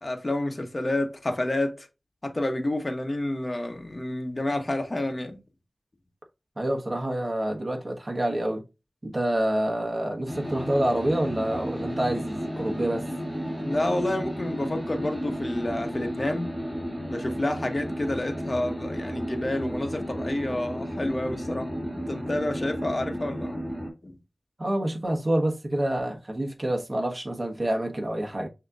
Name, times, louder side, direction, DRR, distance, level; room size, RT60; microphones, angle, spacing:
voice 1, 0.0-1.9 2.2-5.4 13.6-16.5 17.1-23.6 24.0-24.2, left 1 dB, 40° left, 1.0 m, -29 dB
voice 2, 6.6-8.6 9.0-13.0 24.6-28.5, right 1 dB, 40° right, 1.3 m, -27 dB
sound 1, 10.3-23.9, equal, 10° right, 2.3 m, -33 dB
6.3 x 2.9 x 2.4 m
wide cardioid pair, 65°, 0 cm